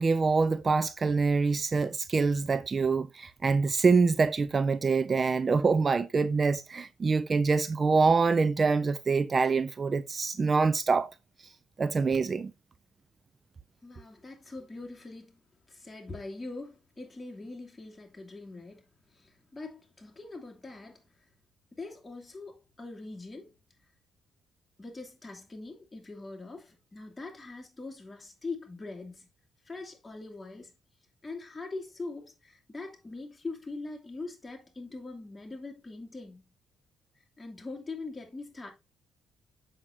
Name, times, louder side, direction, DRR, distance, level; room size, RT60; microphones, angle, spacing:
voice 1, 0.0-11.1 11.8-12.5, right 4 dB, 35° right, 0.5 m, -25 dB
voice 2, 13.8-15.4 15.7-21.0 21.7-23.5 24.8-29.3 29.7-30.7 31.2-36.5 37.4-38.7, left 3 dB, 20° left, 2.6 m, -42 dB
7.6 x 6.4 x 2.7 m
cardioid pair, 90°, 0 cm